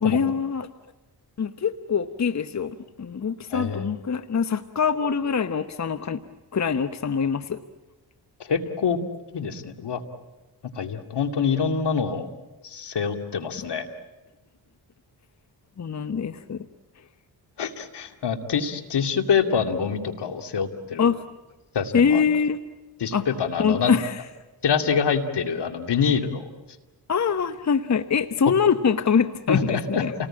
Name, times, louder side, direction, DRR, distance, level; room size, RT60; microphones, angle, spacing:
voice 1, 0.0-0.7 1.4-6.2 6.5-7.6 15.8-16.7 21.0-21.2 21.9-22.6 23.1-23.3 23.6-24.2 27.1-30.1, left 6 dB, 40° left, 11 dB, 1.0 m, -24 dB
voice 2, 3.5-3.9 8.5-9.0 9.3-10.0 10.8-12.3 12.6-13.9 17.6-21.1 21.7-22.2 23.0-23.9 24.6-26.4 29.5-30.0, left 6 dB, 70° left, 6 dB, 2.5 m, -25 dB
29.0 x 19.5 x 8.8 m, 1.1 s
cardioid pair, 65°, 43 cm